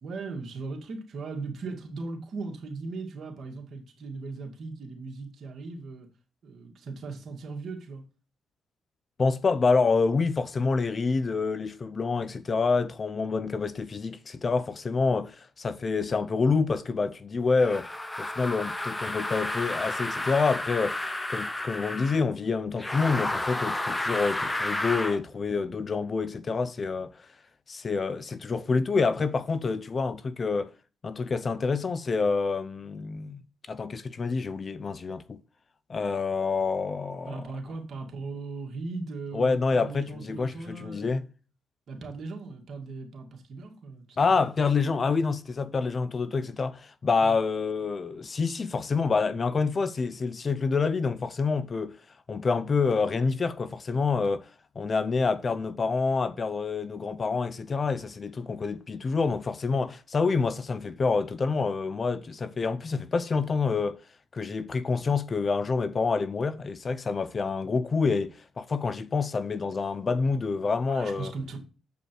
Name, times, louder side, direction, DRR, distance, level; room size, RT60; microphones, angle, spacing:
voice 1, 0.0-6.1 6.4-8.0 37.3-41.3 41.9-44.4 47.2-47.4 70.9-71.6, right 3 dB, 60° right, 2.1 m, -38 dB
voice 2, 9.2-17.9 18.2-21.0 21.3-27.1 27.7-30.7 31.0-33.4 33.7-35.4 35.9-37.4 39.3-41.2 44.2-51.9 52.3-54.5 54.8-64.0 64.3-71.3, left 4 dB, 40° left, 0.6 m, -27 dB
sound 1, 17.6-22.2 22.8-25.2, left 1 dB, 15° left, 0.9 m, -31 dB
8.1 x 5.0 x 4.5 m
cardioid pair, 75°, 0 cm